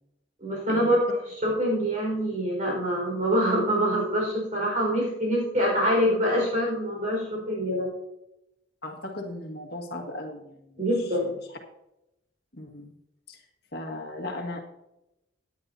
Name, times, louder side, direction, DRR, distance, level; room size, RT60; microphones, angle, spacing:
voice 1, 0.4-7.9 10.8-11.3, equal, 40° right, -2 dB, 4.8 m, -25 dB
voice 2, 8.8-10.5 12.5-12.9 13.3-13.4 13.7-14.6, left 1 dB, 55° left, 2 dB, 1.9 m, -36 dB
17.0 x 9.9 x 2.8 m, 0.88 s
head